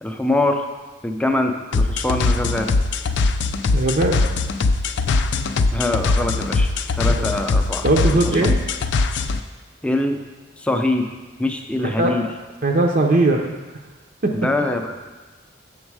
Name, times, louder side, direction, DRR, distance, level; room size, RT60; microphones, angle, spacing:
voice 1, 0.0-0.6 1.0-2.7 5.7-6.7 7.0-7.8 8.4-8.5 9.8-10.2 10.6-11.1 11.4-12.3 14.3-15.0, left 2 dB, 5° left, 4 dB, 0.5 m, -23 dB
sound 1, 1.7-9.4, left 3 dB, 65° left, 0.4 m, -21 dB
voice 2, 3.7-4.2 7.1-7.3 7.8-8.6 11.8-12.2 12.6-13.6 14.2-14.5, right 2 dB, 45° right, 0 dB, 0.6 m, -19 dB
7.3 x 6.2 x 4.7 m, 1.2 s
head